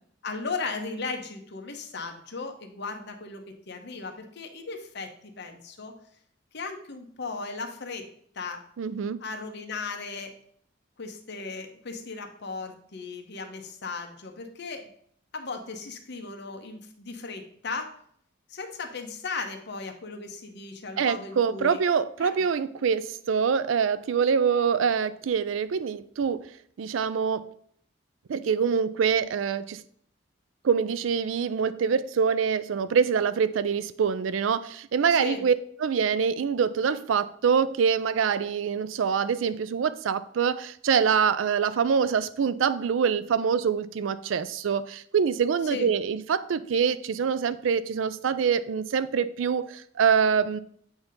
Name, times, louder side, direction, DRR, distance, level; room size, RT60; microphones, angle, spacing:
voice 1, 0.2-5.9 6.5-8.0 8.3-8.6 9.2-10.3 11.0-14.9 15.3-17.9 18.5-21.8 22.2-22.3 35.1-35.4 45.7-45.9, left 4 dB, 60° left, 4 dB, 0.9 m, -36 dB
voice 2, 8.8-9.2 21.0-26.5 26.8-27.5 28.3-29.8 30.6-35.5 35.8-50.6, right 6 dB, 75° right, 15 dB, 0.4 m, -25 dB
8.0 x 2.8 x 5.1 m, 0.63 s
head